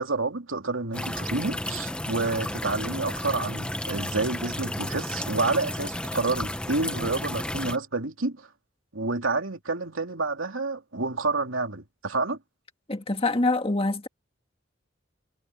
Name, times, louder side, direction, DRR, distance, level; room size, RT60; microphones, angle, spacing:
voice 1, 0.0-8.5 8.9-12.4, right 3 dB, 85° right, 3.0 m, -29 dB
sound 1, 0.9-7.8, left 1 dB, 5° left, 1.1 m, -32 dB
voice 2, 12.9-14.1, left 2 dB, 30° left, 1.9 m, -25 dB
head